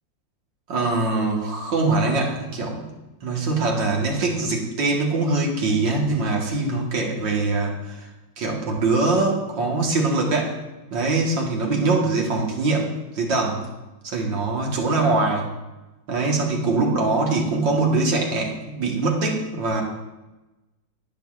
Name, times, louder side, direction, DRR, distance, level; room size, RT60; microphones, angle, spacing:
voice 1, 0.7-2.9 3.2-8.1 8.4-10.6 10.9-13.7 14.0-15.5 16.1-19.8, right 3 dB, 85° right, -1 dB, 2.2 m, -23 dB
11.5 x 9.6 x 2.4 m, 1.1 s
omnidirectional pair, 2.0 m